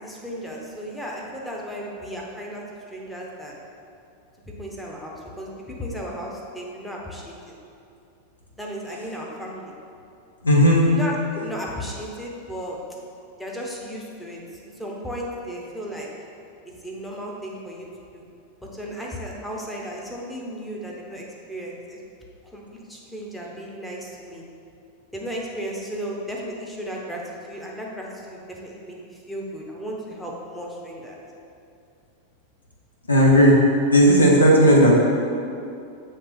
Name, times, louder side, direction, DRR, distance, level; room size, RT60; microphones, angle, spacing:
voice 1, 0.0-3.6 4.5-7.5 8.6-9.7 10.9-12.8 13.4-16.1 16.8-17.9 18.1-18.2 18.6-22.0 22.5-24.4 25.1-31.2, equal, ahead, -3 dB, 1.0 m, -35 dB
voice 2, 10.4-10.8 33.1-33.6 33.9-35.0, equal, 80° left, -2 dB, 1.0 m, -14 dB
7.1 x 3.4 x 4.4 m, 2.6 s
figure-of-eight pair, 90°, 0 cm